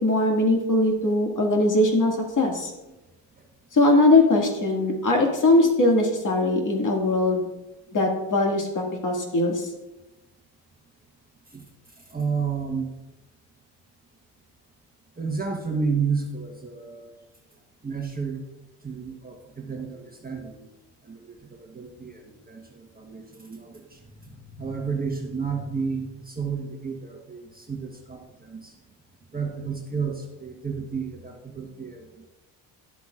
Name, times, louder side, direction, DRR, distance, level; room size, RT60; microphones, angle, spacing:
voice 1, 0.0-2.7 3.7-7.5 7.9-9.7, left 2 dB, 40° left, 1 dB, 2.1 m, -21 dB
voice 2, 12.1-12.9 15.2-17.1 17.8-18.4 18.8-20.7 21.0-24.0 24.5-28.7 29.3-32.3, right 5 dB, 20° right, 1 dB, 1.2 m, -31 dB
11.5 x 7.6 x 2.5 m, 1.0 s
supercardioid pair, 75°, 48 cm